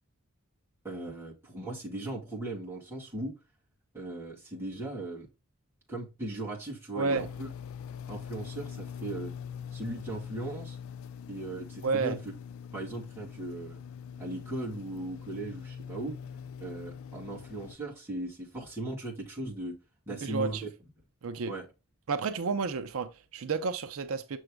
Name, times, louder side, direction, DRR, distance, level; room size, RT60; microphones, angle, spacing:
voice 1, 0.8-3.3 3.9-5.3 5.9-7.5 8.1-9.3 9.7-10.8 11.3-12.2 12.7-13.8 14.2-16.2 16.6-19.8 20.1-20.7 21.4-21.6, right 2 dB, 10° right, 2.7 m, -38 dB
sound 1, 7.2-17.8, left 7 dB, 70° left, 0.4 m, -43 dB
voice 2, 11.8-12.2 20.1-20.6 21.2-21.5 22.1-24.4, right 4 dB, 75° right, 0.6 m, -31 dB
7.0 x 6.3 x 2.2 m
head